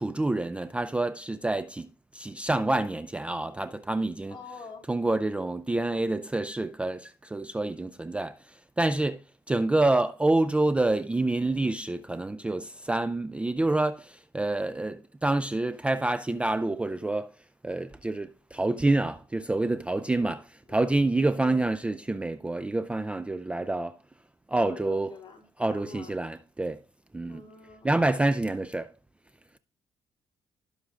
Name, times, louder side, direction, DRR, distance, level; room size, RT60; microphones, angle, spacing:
voice 1, 0.0-4.4 4.9-17.3 17.6-20.4 20.7-23.9 24.5-25.1 25.6-26.8 27.1-27.4 27.8-28.9, right 2 dB, 10° right, 0.4 m, -27 dB
voice 2, 4.3-4.9 20.0-20.3 20.7-21.1 21.3-21.7 24.6-26.1 27.3-28.0, left 5 dB, 50° left, 2.7 m, -45 dB
16.5 x 6.3 x 2.4 m
cardioid pair, 140°, 11 cm